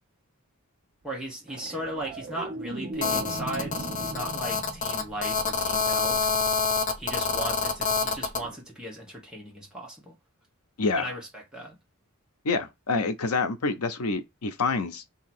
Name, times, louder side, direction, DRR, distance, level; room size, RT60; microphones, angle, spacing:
voice 1, 1.0-6.2 7.0-10.1 11.0-11.8, right 1 dB, 5° right, 1.1 m, -37 dB
sound 1, 1.5-6.0 8.4-8.6, right 2 dB, 35° right, 0.6 m, -38 dB
Telephone, 3.0-8.4, left 5 dB, 35° left, 0.7 m, -27 dB
voice 2, 10.8-11.1 12.4-15.0, left 4 dB, 85° left, 0.7 m, -27 dB
2.9 x 2.8 x 4.3 m
head